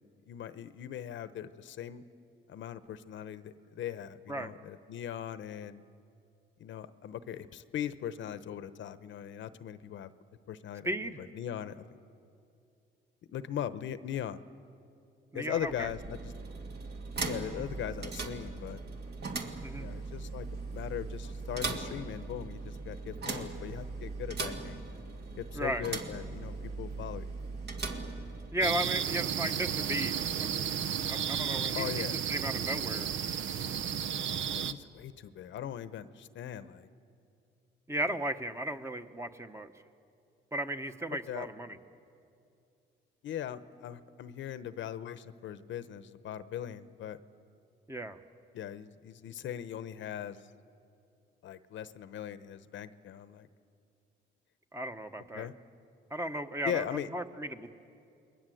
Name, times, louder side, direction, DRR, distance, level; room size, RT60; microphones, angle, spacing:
voice 1, 0.0-2.0 2.5-5.8 6.6-10.1 10.5-11.8 13.3-14.4 15.3-16.3 17.2-18.8 19.3-19.4 19.8-24.8 25.4-27.3 31.7-32.2 34.5-36.9 41.1-41.5 43.2-47.2 48.5-50.4 51.4-53.5 55.3-55.5 56.6-57.1, left 10 dB, 70° left, 13 dB, 0.9 m, -40 dB
voice 2, 10.8-11.2 15.3-15.9 19.6-19.9 25.5-25.9 28.5-30.5 31.0-33.1 37.9-39.7 40.5-41.8 47.9-48.2 54.7-55.5 56.1-57.7, right 1 dB, 15° right, 7 dB, 1.2 m, -35 dB
sound 1, 15.5-28.8, right 3 dB, 55° right, 2.3 m, -39 dB
sound 2, 28.6-34.7, right 8 dB, 70° right, 0.8 m, -33 dB
28.5 x 21.0 x 7.8 m, 2.5 s
cardioid pair, 90°, 20 cm